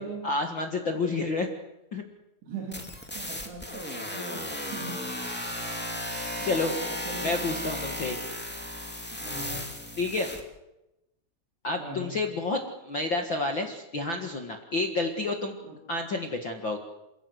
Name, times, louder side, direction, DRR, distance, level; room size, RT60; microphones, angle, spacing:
voice 1, 0.2-1.5 1.9-2.0 6.4-6.7 7.2-8.2 10.0-10.3 11.6-15.5 15.9-16.8, left 3 dB, 45° left, 3 dB, 1.6 m, -29 dB
voice 2, 2.4-2.8 3.1-5.0 5.4-7.6 7.9-8.1 9.1-9.7 11.8-12.2 15.6-15.8, right 2 dB, 85° right, 0 dB, 5.0 m, -41 dB
sound 1, 2.7-10.4, left 1 dB, 5° left, 1.3 m, -35 dB
28.0 x 17.5 x 8.1 m, 0.96 s
omnidirectional pair, 4.7 m